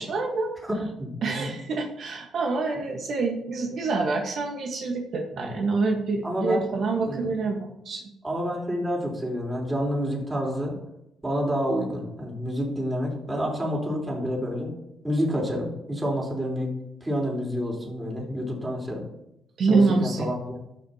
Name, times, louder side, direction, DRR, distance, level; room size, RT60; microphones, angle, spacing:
voice 1, 0.0-0.5 1.2-8.0 19.6-20.3, right 3 dB, 65° right, 1 dB, 1.2 m, -26 dB
voice 2, 0.6-1.5 5.4-5.6 6.2-6.6 7.0-7.3 8.2-10.7 11.2-14.7 15.0-16.7 17.0-19.1 19.7-20.6, equal, 20° right, -2 dB, 3.6 m, -28 dB
13.0 x 6.2 x 2.8 m, 0.84 s
cardioid pair, 90°, 0 cm